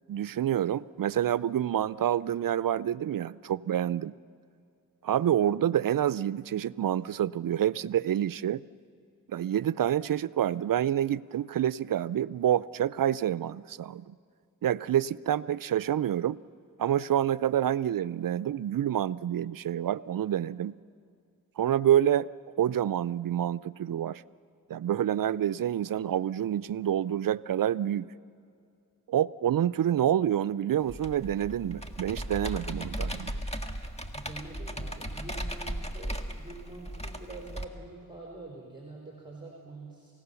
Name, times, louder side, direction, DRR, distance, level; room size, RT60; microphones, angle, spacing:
voice 1, 0.1-4.1 5.0-8.6 9.3-14.1 14.6-16.4 16.8-20.8 21.6-22.3 22.6-24.2 24.7-28.1 29.1-33.4, right 10 dB, 65° right, 18 dB, 0.5 m, -27 dB
Computer keyboard, 30.9-37.6, equal, 15° left, 1.8 m, -36 dB
voice 2, 34.1-40.1, right 3 dB, 10° right, -1 dB, 4.5 m, -45 dB
29.5 x 16.5 x 7.0 m, 2.4 s
cardioid pair, 50°, 37 cm